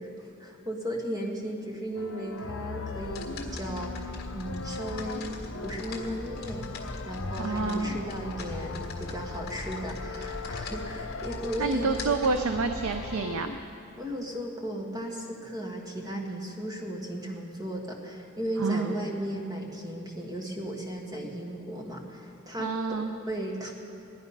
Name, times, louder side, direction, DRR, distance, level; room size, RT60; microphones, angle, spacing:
voice 1, 0.0-12.2 14.0-22.7 23.3-23.7, right 1 dB, 15° right, 0 dB, 1.5 m, -36 dB
sound 1, 1.9-13.6, left 4 dB, 65° left, 0.6 m, -39 dB
sound 2, 2.9-13.2, left 2 dB, 45° left, 1.6 m, -41 dB
voice 2, 7.4-7.9 11.6-13.5 18.6-19.0 22.6-23.1, right 3 dB, 85° right, 7 dB, 0.6 m, -28 dB
16.0 x 11.0 x 5.6 m, 2.7 s
head